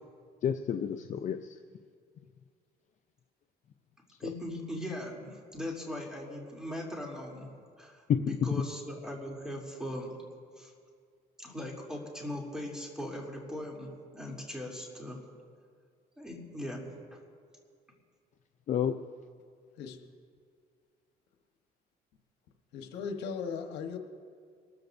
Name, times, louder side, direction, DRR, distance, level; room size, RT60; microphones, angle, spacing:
voice 1, 0.4-1.6 4.2-4.3 8.1-8.6 18.7-19.0, left 8 dB, 45° left, 7 dB, 0.5 m, -30 dB
voice 2, 4.2-10.1 10.6-10.7 11.4-15.2 16.2-17.2, left 1 dB, 5° right, -2 dB, 3.0 m, -39 dB
voice 3, 22.7-24.0, left 6 dB, 85° left, 5 dB, 1.2 m, -37 dB
24.5 x 13.5 x 2.6 m, 2.1 s
cardioid pair, 110°, 17 cm